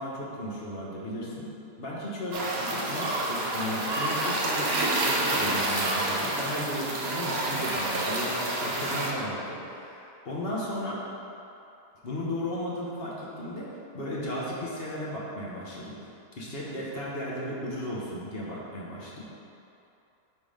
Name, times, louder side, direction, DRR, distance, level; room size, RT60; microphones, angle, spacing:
voice 1, 0.0-1.5 1.8-11.0 12.0-13.7 13.9-16.0 16.4-19.2, left 1 dB, 40° left, -5 dB, 1.1 m, -35 dB
sound 1, 2.3-9.1, right 2 dB, 50° right, 0.8 m, -28 dB
5.4 x 4.1 x 5.0 m, 2.8 s
omnidirectional pair, 1.7 m